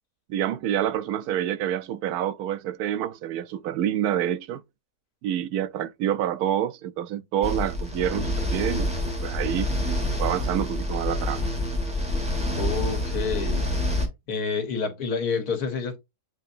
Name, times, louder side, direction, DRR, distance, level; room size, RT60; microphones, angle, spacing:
voice 1, 0.3-4.6 5.2-8.9 9.2-9.7 10.2-11.5, right 10 dB, 90° right, 1.1 m, -27 dB
sound 1, 7.4-14.1, left 1 dB, 5° right, 1.3 m, -27 dB
voice 2, 12.5-13.6 14.3-16.0, left 5 dB, 85° left, 1.7 m, -28 dB
7.7 x 2.7 x 2.5 m
omnidirectional pair, 1.6 m